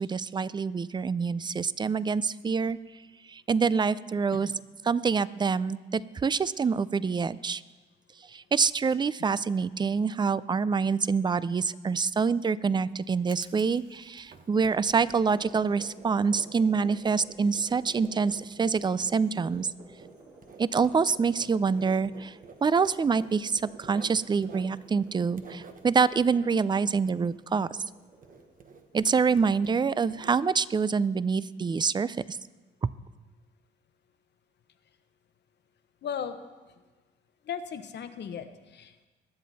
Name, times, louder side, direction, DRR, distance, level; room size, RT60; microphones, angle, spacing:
voice 1, 0.0-2.8 3.3-4.5 4.8-7.6 8.3-19.7 20.6-22.3 22.6-27.7 28.9-32.4, right 5 dB, 20° right, 18 dB, 0.4 m, -26 dB
Writing, 12.6-28.0 28.2-30.8, right 5 dB, 45° right, 1.1 m, -51 dB
sound 1, 15.0-29.2, right 2 dB, 70° right, 4.5 m, -52 dB
voice 2, 36.0-36.4 37.5-39.1, left 7 dB, 60° left, 9 dB, 1.0 m, -36 dB
21.5 x 7.6 x 4.1 m, 1.3 s
cardioid pair, 90°, 20 cm